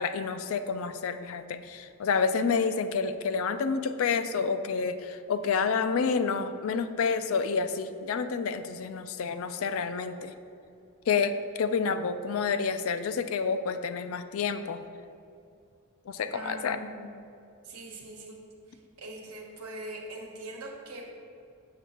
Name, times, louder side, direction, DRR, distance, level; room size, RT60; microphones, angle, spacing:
voice 1, 0.0-10.3 11.1-14.8 16.1-16.9, left 5 dB, 65° left, 11 dB, 0.3 m, -29 dB
voice 2, 16.3-17.1 17.6-18.4 18.7-21.1, right 2 dB, 85° right, 0 dB, 1.1 m, -42 dB
7.0 x 6.7 x 2.9 m, 2.5 s
head